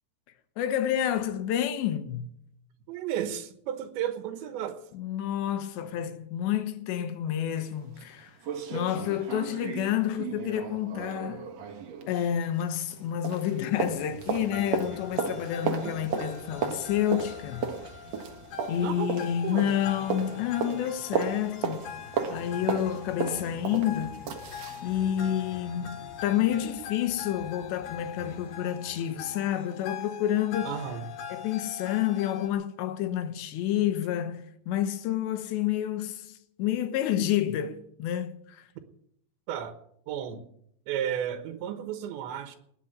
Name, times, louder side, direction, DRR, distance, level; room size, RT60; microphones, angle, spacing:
voice 1, 0.6-2.4 4.9-8.4 8.7-11.5 12.1-17.8 18.7-21.9 22.3-24.2 24.8-30.7 31.3-38.7, left 11 dB, 85° left, 3.4 m, -29 dB
voice 2, 2.9-4.8 15.6-16.1 18.8-19.1 19.4-19.7 23.2-23.6 30.7-31.1 39.5-39.8 40.1-40.5 40.9-42.6, right 10 dB, 90° right, 3.5 m, -33 dB
sound 1, 7.6-7.7 8.0-8.1 8.4-13.0 13.2-24.9 25.2-25.3, right 6 dB, 60° right, 1.8 m, -35 dB
sound 2, 13.7-30.8, left 2 dB, 20° left, 2.4 m, -52 dB
sound 3, 14.5-32.5, left 7 dB, 60° left, 3.1 m, -43 dB
19.5 x 7.3 x 9.0 m
omnidirectional pair, 5.0 m